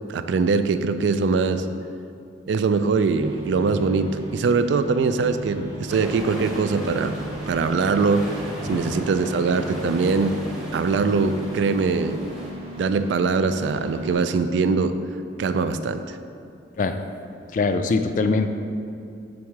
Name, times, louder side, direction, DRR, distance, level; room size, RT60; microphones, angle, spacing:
voice 1, 0.1-1.7 2.5-7.2 7.5-8.3 8.7-10.4 10.7-12.2 12.8-14.9 15.4-16.0, right 4 dB, 75° right, 10 dB, 0.3 m, -22 dB
sound 1, 3.1-14.1, right 1 dB, 30° right, 1.2 m, -37 dB
sound 2, 5.9-12.5, equal, 5° right, 0.8 m, -37 dB
voice 2, 17.5-18.5, left 3 dB, 45° left, 8 dB, 0.3 m, -22 dB
6.2 x 3.6 x 4.7 m, 2.6 s
head